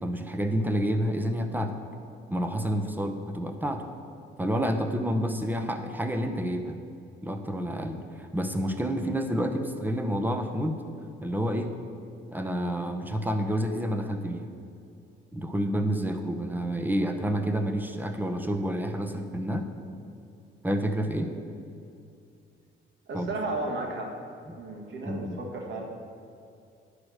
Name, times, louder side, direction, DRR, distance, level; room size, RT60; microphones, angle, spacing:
voice 1, 0.0-1.8 2.3-3.8 4.4-6.8 7.2-10.8 11.2-11.7 12.3-14.5 15.3-19.7 20.6-21.3 23.1-23.3 24.5-24.6 25.0-25.4, equal, 10° right, 6 dB, 0.9 m, -29 dB
voice 2, 23.1-24.1 24.6-25.8, right 2 dB, 65° right, 1 dB, 1.7 m, -33 dB
10.5 x 4.9 x 6.4 m, 2.5 s
cardioid pair, 90°, 20 cm